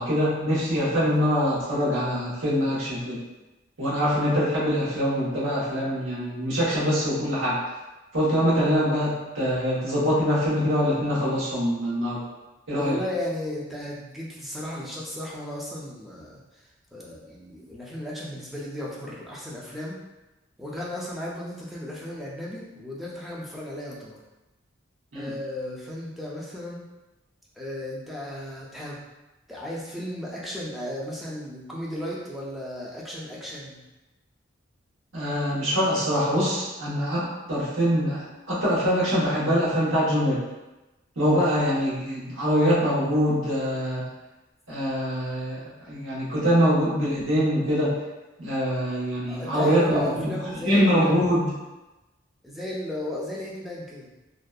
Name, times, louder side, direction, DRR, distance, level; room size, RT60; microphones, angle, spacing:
voice 1, 0.0-3.2 3.8-7.6 8.1-12.2 12.7-12.9 25.1-25.3 35.1-40.4 41.2-44.0 44.7-45.6 45.9-47.9 48.4-50.3 50.6-51.5, equal, 85° right, -8 dB, 1.0 m, -24 dB
voice 2, 12.7-16.6 16.9-20.0 20.6-24.2 25.1-26.9 27.6-29.0 29.5-33.8 49.3-51.2 52.4-54.1, left 1 dB, ahead, -5 dB, 0.4 m, -35 dB
2.6 x 2.1 x 2.3 m, 1.1 s
head